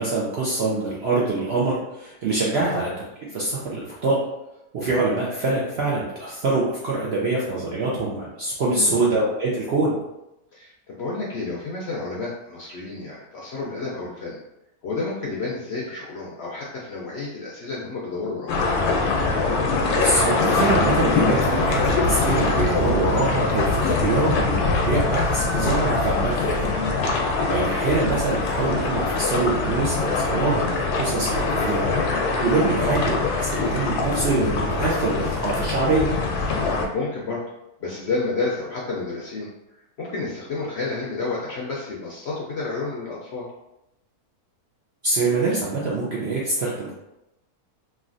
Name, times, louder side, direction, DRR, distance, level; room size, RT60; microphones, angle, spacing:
voice 1, 0.0-2.9 3.3-4.2 4.7-9.9 20.0-26.7 27.5-31.9 32.4-36.1 45.0-46.9, right 3 dB, 65° right, -5 dB, 0.6 m, -24 dB
voice 2, 8.7-9.1 10.5-14.4 14.8-18.5 26.7-27.0 32.8-33.0 36.9-37.4 37.8-39.5 40.0-43.4, left 3 dB, 70° left, -4 dB, 0.6 m, -30 dB
sound 1, 18.5-36.9, left 3 dB, 90° left, 1.1 m, -23 dB
3.1 x 2.5 x 2.5 m, 0.90 s
omnidirectional pair, 1.6 m